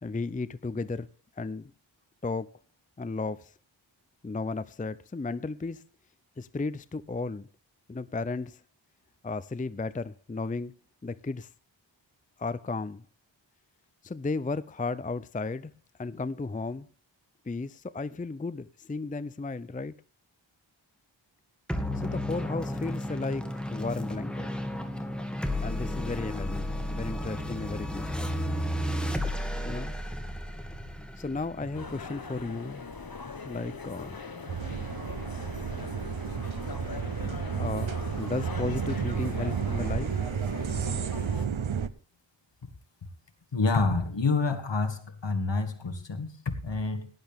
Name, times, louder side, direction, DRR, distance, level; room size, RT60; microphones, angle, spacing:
voice 1, 0.0-1.1 1.4-1.7 2.2-2.5 3.0-3.5 4.2-5.8 6.4-7.5 7.9-8.6 9.2-10.7 11.0-11.5 12.4-13.0 14.0-15.7 16.0-16.9 17.5-19.9 22.0-24.5 25.6-28.1 29.7-29.9 31.2-32.9 33.4-34.2 37.6-40.2, left 3 dB, 20° left, 0.5 m, -34 dB
sound 1, 21.7-32.5, left 1 dB, ahead, 2.3 m, -33 dB
sound 2, 31.7-41.5, left 4 dB, 50° left, 1.5 m, -41 dB
sound 3, 34.5-41.9, right 7 dB, 90° right, 0.9 m, -32 dB
voice 2, 43.5-47.1, left 3 dB, 65° left, 2.2 m, -28 dB
17.5 x 11.0 x 3.6 m
wide cardioid pair, 85°, 46 cm